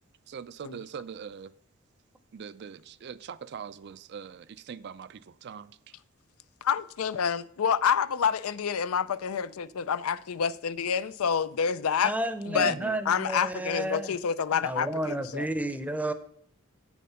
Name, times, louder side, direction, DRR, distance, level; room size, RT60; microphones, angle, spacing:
voice 1, 0.3-1.5 2.3-5.9 12.5-13.0, right 7 dB, 50° right, 0.4 m, -42 dB
voice 2, 6.6-12.1 12.5-12.7 13.1-15.5, left 7 dB, 90° left, 0.5 m, -28 dB
voice 3, 12.0-14.1 14.6-16.1, right 1 dB, 5° right, 0.6 m, -31 dB
8.5 x 7.2 x 5.6 m
head